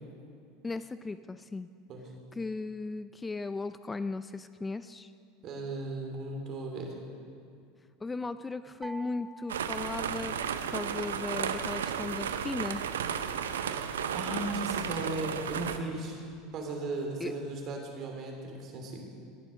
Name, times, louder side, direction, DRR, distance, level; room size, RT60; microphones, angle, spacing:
voice 1, 0.6-1.7 2.4-5.1 8.0-12.9 17.2-17.3, left 3 dB, 15° left, 13 dB, 0.4 m, -37 dB
voice 2, 5.4-6.9 13.6-16.2 16.5-19.0, right 2 dB, 50° right, 2 dB, 3.0 m, -36 dB
sound 1, 8.8-11.0, right 1 dB, 10° right, 0.8 m, -48 dB
sound 2, 9.5-15.8, right 8 dB, 85° right, 0.6 m, -33 dB
18.5 x 7.2 x 6.5 m, 2.3 s
hypercardioid pair, 85°, 0 cm